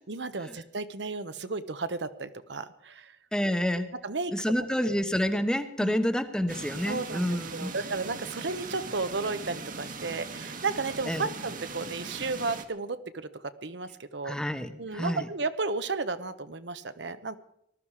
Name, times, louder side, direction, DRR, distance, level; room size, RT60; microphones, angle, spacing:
voice 1, 0.1-3.1 4.0-4.3 4.8-4.9 5.8-6.0 6.8-14.3 14.8-17.4, right 3 dB, 70° right, 11 dB, 1.0 m, -33 dB
voice 2, 3.3-3.9 4.3-7.7 11.1-11.3 14.2-15.3, equal, 5° left, 9 dB, 1.0 m, -28 dB
sound 1, 6.5-12.6, right 4 dB, 50° right, 1.5 m, -40 dB
19.5 x 12.5 x 4.9 m, 0.75 s
head